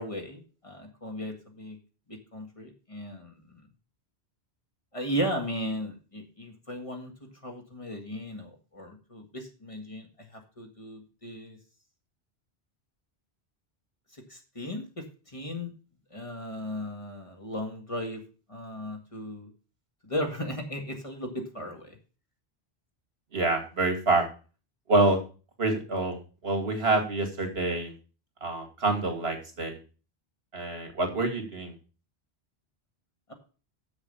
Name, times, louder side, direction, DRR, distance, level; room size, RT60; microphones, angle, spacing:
voice 1, 0.0-1.8 2.1-3.6 4.9-11.6 14.1-15.7 16.1-18.2 18.5-19.5 20.0-22.0 33.3-33.4, equal, 30° left, 2 dB, 1.8 m, -36 dB
voice 2, 23.3-24.3 24.9-25.2 25.6-27.9 28.4-29.8 30.5-31.7, right 2 dB, 70° right, 5 dB, 2.3 m, -27 dB
7.2 x 6.8 x 6.8 m, 0.36 s
omnidirectional pair, 1.1 m